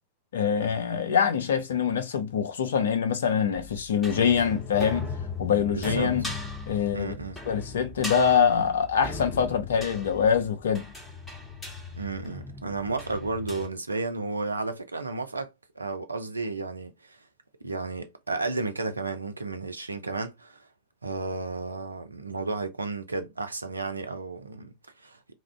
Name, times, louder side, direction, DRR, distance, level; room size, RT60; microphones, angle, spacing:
voice 1, 0.3-5.1 5.4-6.2 6.7-7.2 7.5-10.8, left 7 dB, 65° left, 0.5 m, -24 dB
sound 1, 3.6-13.7, left 3 dB, 10° left, 1.3 m, -38 dB
voice 2, 5.7-6.1 6.9-7.4 12.0-17.2 17.6-20.7 21.0-25.3, right 3 dB, 80° right, 0.4 m, -33 dB
2.4 x 2.0 x 3.3 m
figure-of-eight pair, 90°, 0 cm